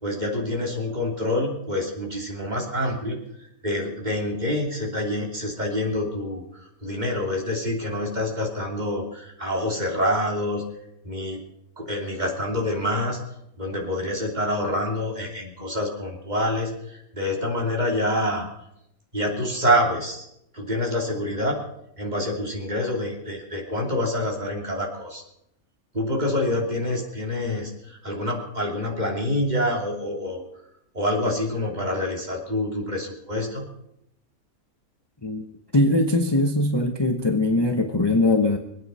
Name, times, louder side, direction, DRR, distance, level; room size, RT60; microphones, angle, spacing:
voice 1, 0.0-10.6 11.0-11.4 11.8-13.2 13.6-18.5 19.1-20.3 20.5-21.6 22.0-25.2 25.9-30.4 30.9-33.6, left 1 dB, 30° right, 1 dB, 3.1 m, -27 dB
voice 2, 35.7-38.6, left 2 dB, 20° left, 4 dB, 1.0 m, -21 dB
24.0 x 9.1 x 5.6 m, 0.78 s
omnidirectional pair, 1.5 m